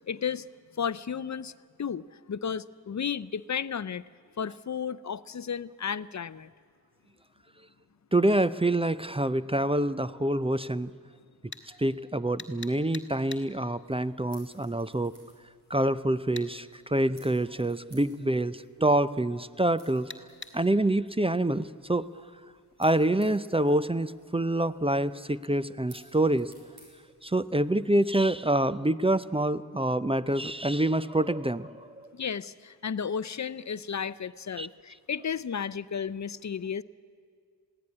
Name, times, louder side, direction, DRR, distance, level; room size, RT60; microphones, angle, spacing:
voice 1, 0.1-0.5 0.8-1.5 1.8-4.0 4.4-6.5 32.1-36.8, left 7 dB, 45° left, 18 dB, 0.6 m, -33 dB
voice 2, 8.1-10.9 11.7-15.1 15.7-20.1 20.5-22.1 22.8-26.5 27.2-31.9 34.6-34.7, right 1 dB, 15° right, 14 dB, 0.5 m, -26 dB
sound 1, 11.5-11.7 12.4-13.5 16.4-16.5 20.1-20.6, left 3 dB, 30° left, 1.6 m, -41 dB
sound 2, 13.7-28.3, right 1 dB, 75° right, 6.8 m, -61 dB
21.5 x 16.0 x 9.7 m, 2.1 s
wide cardioid pair, 80°, 40 cm